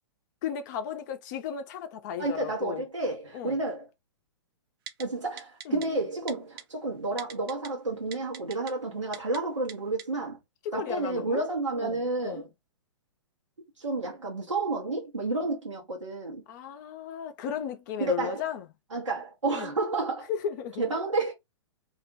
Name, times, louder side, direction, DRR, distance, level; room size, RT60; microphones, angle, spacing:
voice 1, 0.4-2.8 3.3-3.6 5.7-5.8 10.6-11.4 11.8-12.5 16.5-18.7 19.5-19.7 20.3-20.8, left 8 dB, 40° left, 0.5 m, -35 dB
voice 2, 2.2-3.9 5.0-10.4 10.7-12.4 13.8-16.4 18.0-18.4 18.9-20.3 20.8-21.3, right 2 dB, 85° right, 0.9 m, -30 dB
Typing, 4.9-5.0 5.4-5.9 6.3-6.6 7.2-7.7 8.1-8.7 9.1-9.4 9.7-9.8 10.0-10.1, right 9 dB, 50° right, 0.5 m, -40 dB
2.4 x 2.1 x 2.5 m
figure-of-eight pair, 115°, 15 cm